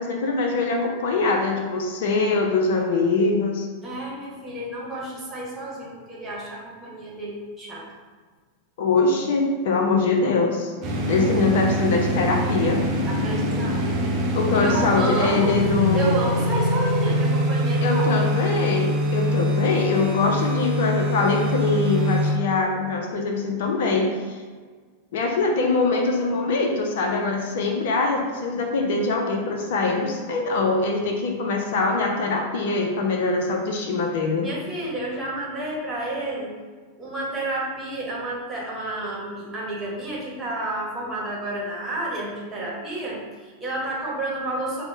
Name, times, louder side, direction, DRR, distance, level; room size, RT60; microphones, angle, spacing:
voice 1, 0.0-3.7 8.8-10.7 11.1-12.8 14.3-16.2 17.8-24.4 25.1-34.5, left 3 dB, 55° left, 2 dB, 0.4 m, -23 dB
voice 2, 3.8-7.9 13.1-14.2 14.5-15.6 15.9-18.3 34.4-36.5 37.0-44.8, right 2 dB, 15° right, -5 dB, 1.2 m, -30 dB
sound 1, 10.8-22.4, equal, 35° right, 0.8 m, -24 dB
5.2 x 2.0 x 3.2 m, 1.5 s
figure-of-eight pair, 90°, 0 cm